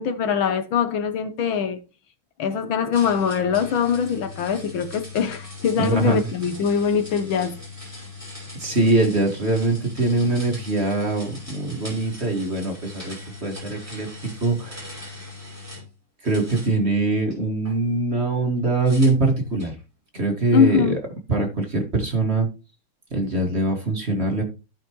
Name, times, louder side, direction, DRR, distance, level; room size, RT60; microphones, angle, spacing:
voice 1, 0.0-1.8 2.4-7.6 20.5-21.0, left 7 dB, 70° left, 1.6 m, -22 dB
sound 1, 2.9-15.9 16.2-17.7 18.8-19.8, left 3 dB, 5° right, 5.2 m, -40 dB
voice 2, 5.8-6.2 8.6-13.2 13.4-14.9 16.2-19.8 20.1-21.0 21.3-22.5 23.1-24.4, right 2 dB, 30° right, 2.0 m, -23 dB
16.0 x 5.9 x 3.1 m
omnidirectional pair, 2.4 m